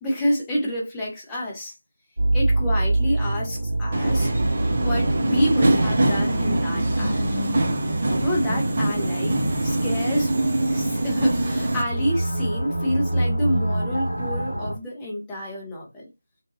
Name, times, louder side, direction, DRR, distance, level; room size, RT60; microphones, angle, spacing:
voice 1, 0.0-1.7 2.3-4.3 4.8-7.5 8.2-10.3 10.7-16.0, equal, 10° left, 0.7 m, -28 dB
sound 1, 2.2-14.7, right 1 dB, 45° right, 1.4 m, -27 dB
Subway metro underground, 3.9-11.8, right 1 dB, 30° right, 0.6 m, -23 dB
2.8 x 2.2 x 2.8 m
figure-of-eight pair, 165°, 0 cm